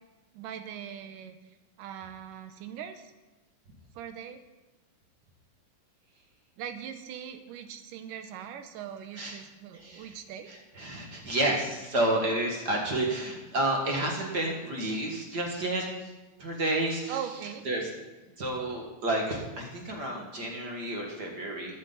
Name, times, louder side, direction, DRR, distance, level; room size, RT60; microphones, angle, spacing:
voice 1, 0.3-1.4 1.8-3.1 4.0-4.4 6.6-10.5 17.1-17.6, right 9 dB, 75° right, 8 dB, 2.3 m, -40 dB
voice 2, 9.7-10.2 10.5-16.1 16.4-17.2 17.6-17.9 18.4-21.8, right 1 dB, 40° right, 0 dB, 1.5 m, -30 dB
14.0 x 10.5 x 4.0 m, 1.2 s
omnidirectional pair, 4.1 m